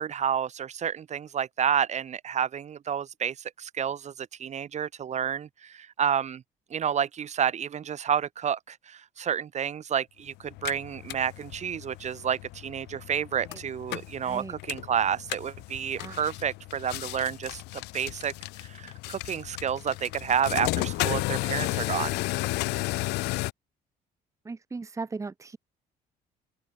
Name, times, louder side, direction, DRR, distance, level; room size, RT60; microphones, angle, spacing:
voice 1, 0.0-6.4 6.7-17.6 17.9-18.3 18.7-22.2, right 8 dB, 45° right, 1.4 m, -30 dB
sound 1, 10.5-23.5, left 22 dB, 85° left, 0.5 m, -34 dB
voice 2, 14.2-14.5 16.0-16.2 24.4-25.6, right 4 dB, 20° right, 1.1 m, -37 dB
open air
cardioid pair, 110°, 17 cm